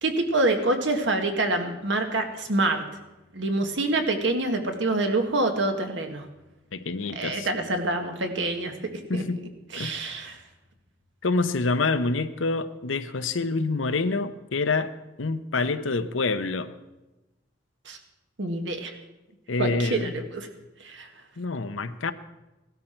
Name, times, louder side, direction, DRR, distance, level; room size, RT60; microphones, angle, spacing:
voice 1, 0.0-2.8 3.3-6.2 7.1-9.2 9.7-10.4 17.8-18.0 18.4-18.9 19.6-20.5 20.8-21.1, right 2 dB, 65° right, 5 dB, 1.7 m, -26 dB
voice 2, 6.7-7.5 9.1-9.4 9.7-9.9 11.2-14.9 15.2-16.7 19.5-20.1 21.4-22.1, left 3 dB, 80° left, 11 dB, 0.8 m, -27 dB
16.5 x 13.0 x 4.5 m, 1.0 s
head